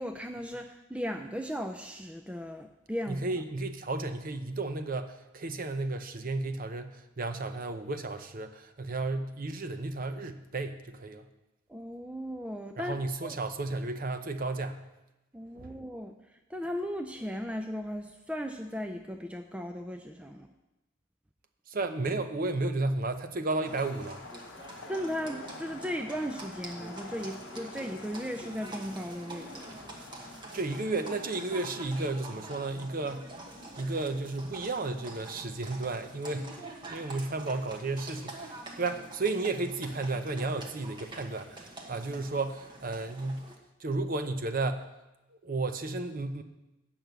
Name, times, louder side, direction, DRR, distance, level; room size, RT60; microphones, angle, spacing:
voice 1, 0.0-3.2 11.7-13.0 13.2-13.4 15.3-16.1 16.5-20.5 24.9-29.8, equal, 5° right, 5 dB, 0.4 m, -36 dB
voice 2, 3.1-11.3 12.8-14.8 15.5-15.7 21.7-24.2 30.5-33.3 33.8-36.6 36.9-43.5 43.8-44.9 45.4-46.4, right 2 dB, 40° right, 8 dB, 0.7 m, -33 dB
sound 1, 23.5-32.5, left 3 dB, 55° left, 0.9 m, -49 dB
Livestock farm animals working animals, 23.6-43.5, right 2 dB, 20° right, 1.2 m, -46 dB
8.7 x 6.0 x 7.9 m, 0.97 s
head